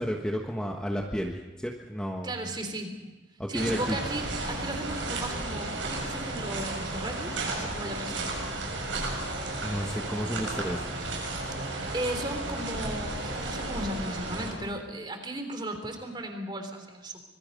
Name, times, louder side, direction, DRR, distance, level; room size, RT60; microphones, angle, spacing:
voice 1, 0.0-2.3 3.4-4.0 9.6-11.1, equal, 5° left, 0 dB, 1.4 m, -32 dB
voice 2, 2.2-3.0 3.5-8.3 11.9-17.2, right 1 dB, 25° right, 5 dB, 3.3 m, -36 dB
sound 1, 3.5-14.5, right 2 dB, 90° right, 7.0 m, -33 dB
25.5 x 22.0 x 5.3 m, 1.2 s
head